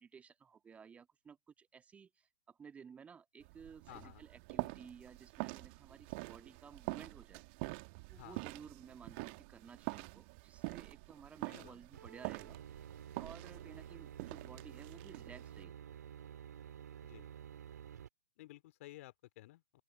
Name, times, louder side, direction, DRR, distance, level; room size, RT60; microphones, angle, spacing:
voice 1, 0.0-7.4 8.1-12.6 13.2-15.7, right 6 dB, 10° right, 1.7 m, -56 dB
sound 1, 3.4-15.6, right 29 dB, 35° right, 2.5 m, -46 dB
voice 2, 3.9-4.2 8.1-8.4 11.5-11.8 17.0-17.3 18.4-19.8, left 17 dB, 45° left, 2.7 m, -54 dB
sound 2, 11.9-18.1, right 9 dB, 55° right, 5.3 m, -51 dB
open air
figure-of-eight pair, 115°, 11 cm